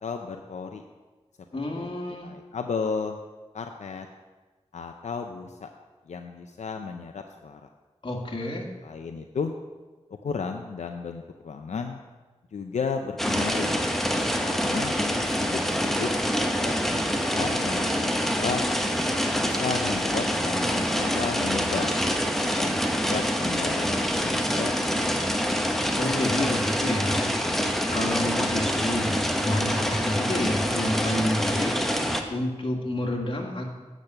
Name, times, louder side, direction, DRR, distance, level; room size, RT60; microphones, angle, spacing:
voice 1, 0.0-0.8 1.8-1.9 2.2-3.2 3.5-4.1 4.7-5.7 6.1-7.6 8.8-9.5 10.2-12.0 12.5-13.8 14.4-14.9 15.2-16.1 16.3-18.7 19.3-21.9 22.6-25.6, left 5 dB, 85° left, 5 dB, 0.5 m, -34 dB
voice 2, 1.5-2.3 8.0-8.7 26.0-27.3 27.9-31.7 32.3-33.7, left 1 dB, 50° left, 0 dB, 1.8 m, -29 dB
sound 1, 13.2-32.2, equal, 5° left, 0.9 m, -26 dB
8.7 x 6.1 x 6.5 m, 1.3 s
wide cardioid pair, 60°, 12 cm